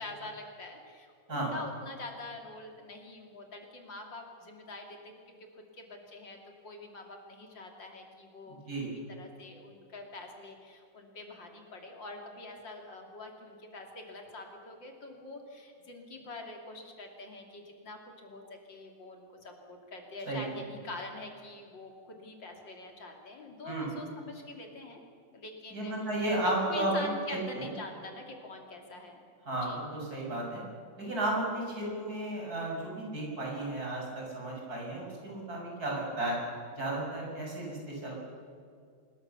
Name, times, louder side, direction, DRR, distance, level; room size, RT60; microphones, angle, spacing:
voice 1, 0.0-8.6 8.8-18.4 18.7-25.0 25.3-25.9 26.4-29.2 29.6-29.8, left 2 dB, 70° left, 2 dB, 3.7 m, -45 dB
voice 2, 8.5-8.9 20.3-20.4 23.6-23.9 25.7-27.7 29.5-30.6 31.0-36.4 36.7-38.2, right 1 dB, 50° right, -2 dB, 7.4 m, -33 dB
25.0 x 22.0 x 7.0 m, 2.2 s
omnidirectional pair, 2.1 m